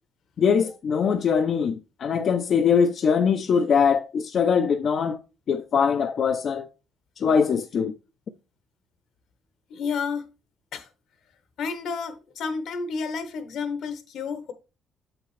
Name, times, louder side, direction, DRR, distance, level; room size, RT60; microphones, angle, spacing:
voice 1, 0.4-5.2 5.5-6.7 7.2-7.9, left 6 dB, 50° left, 0.6 m, -22 dB
voice 2, 9.7-10.2 10.7-10.9 11.6-14.5, left 5 dB, 70° left, 1.2 m, -31 dB
7.3 x 5.8 x 3.2 m
cardioid pair, 105°, 0 cm